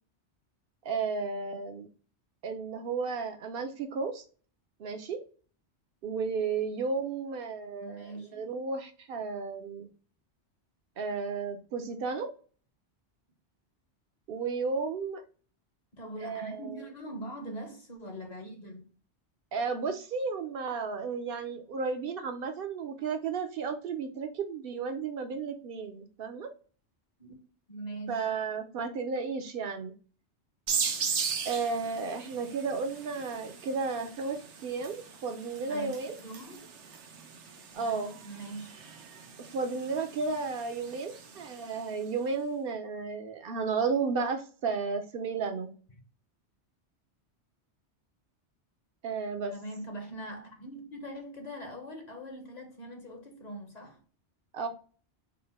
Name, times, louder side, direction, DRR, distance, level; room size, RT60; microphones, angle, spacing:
voice 1, 0.8-1.9 2.4-4.2 4.8-5.2 6.0-9.9 11.0-12.3 14.3-15.2 16.2-16.8 19.5-26.5 28.1-29.9 31.4-36.1 37.7-38.2 39.4-45.7 49.0-49.5 54.5-54.7, right 4 dB, 60° right, 0.7 m, -33 dB
voice 2, 7.8-8.6 15.9-18.9 27.2-27.4 27.7-28.2 35.7-35.9 36.2-36.7 37.7-38.8 49.5-54.0, right 1 dB, 45° left, 0.8 m, -42 dB
sound 1, 30.7-42.0, right 6 dB, 85° right, 1.0 m, -38 dB
3.9 x 2.1 x 4.1 m
omnidirectional pair, 1.2 m